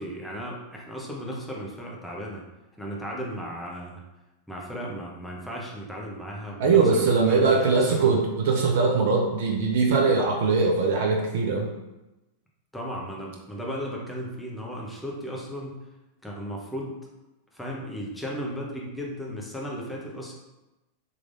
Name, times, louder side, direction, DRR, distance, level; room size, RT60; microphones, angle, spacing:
voice 1, 0.0-2.4 2.8-4.0 4.5-8.2 12.7-15.8 16.2-17.0 17.5-20.3, equal, 5° left, -3 dB, 0.8 m, -35 dB
voice 2, 6.6-11.7, right 4 dB, 55° right, 0 dB, 0.5 m, -21 dB
3.8 x 3.1 x 2.5 m, 1.0 s
figure-of-eight pair, 90°, 0 cm